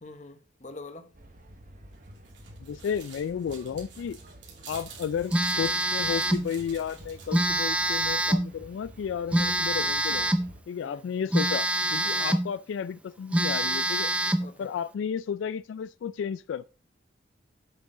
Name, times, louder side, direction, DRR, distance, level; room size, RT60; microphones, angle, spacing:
voice 1, 0.0-1.1 10.8-11.1 12.0-12.3 14.4-14.7, left 2 dB, 40° left, 0.9 m, -45 dB
sound 1, 1.1-10.6, right 1 dB, 45° right, 1.0 m, -50 dB
sound 2, 1.9-7.6, right 7 dB, 80° right, 2.5 m, -49 dB
voice 2, 2.6-4.2 4.7-10.3 10.7-11.7 11.9-14.1 14.6-16.6, left 7 dB, 85° left, 0.3 m, -33 dB
Telephone, 5.3-6.5 7.3-8.5 9.3-10.5 11.3-12.5 12.9-13.0 13.3-14.5, right 1 dB, 5° right, 0.5 m, -25 dB
7.9 x 6.0 x 3.7 m
head